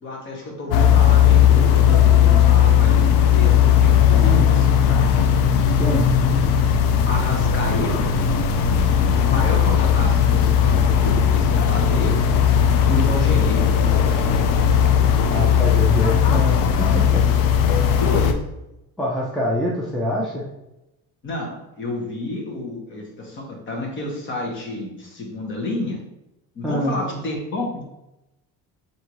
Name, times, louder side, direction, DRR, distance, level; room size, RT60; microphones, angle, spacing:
voice 1, 0.0-5.2 7.0-8.0 9.2-12.2 12.9-13.7 17.7-18.4 21.2-26.0 26.5-27.8, left 2 dB, 35° left, 0 dB, 0.9 m, -30 dB
sound 1, 0.7-18.3, left 8 dB, 80° left, 0.5 m, -17 dB
sound 2, 7.5-14.9, right 5 dB, 65° right, 0.7 m, -32 dB
voice 2, 15.3-17.2 19.0-20.4 26.6-27.0, left 1 dB, ahead, -5 dB, 0.4 m, -24 dB
4.9 x 2.7 x 2.9 m, 0.91 s
cardioid pair, 175°, 33 cm